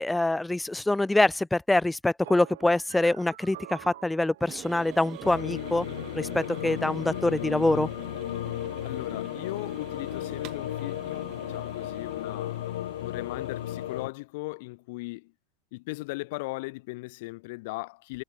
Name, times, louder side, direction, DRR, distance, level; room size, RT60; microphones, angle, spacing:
voice 1, 0.0-5.9 6.1-7.9, left 2 dB, 5° left, 0.5 m, -25 dB
sound 1, 2.2-7.5, right 14 dB, 80° right, 4.3 m, -47 dB
sound 2, 4.4-14.1, right 17 dB, 40° right, 5.4 m, -47 dB
sound 3, 5.2-14.1, left 13 dB, 85° left, 3.0 m, -34 dB
voice 2, 8.8-15.3 15.7-18.2, left 24 dB, 60° left, 4.2 m, -38 dB
supercardioid pair, 140°, 0 cm